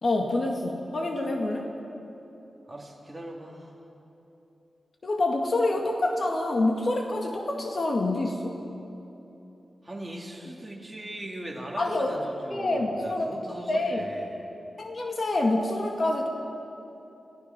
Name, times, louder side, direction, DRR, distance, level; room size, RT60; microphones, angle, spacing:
voice 1, 0.0-1.7 5.0-8.6 11.8-12.2 12.5-13.3 13.7-14.0 14.8-16.3, left 2 dB, 50° left, 1 dB, 2.0 m, -27 dB
voice 2, 2.7-3.7 9.8-14.4, right 1 dB, 10° right, -3 dB, 2.7 m, -39 dB
27.5 x 17.5 x 6.0 m, 3.0 s
wide cardioid pair, 120°, 0 cm